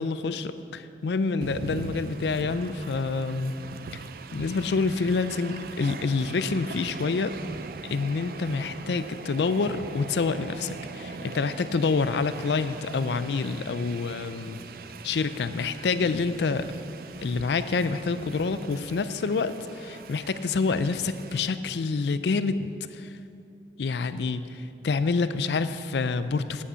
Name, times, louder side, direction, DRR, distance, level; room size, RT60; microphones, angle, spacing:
voice 1, 0.0-3.5 3.9-4.0 4.3-7.3 7.9-14.6 15.0-16.7 17.2-23.1 23.8-24.4 24.8-26.6, left 4 dB, 75° left, 12 dB, 0.4 m, -27 dB
Train, 1.4-21.4, right 4 dB, 55° right, 0.4 m, -41 dB
9.7 x 8.5 x 5.7 m, 2.6 s
head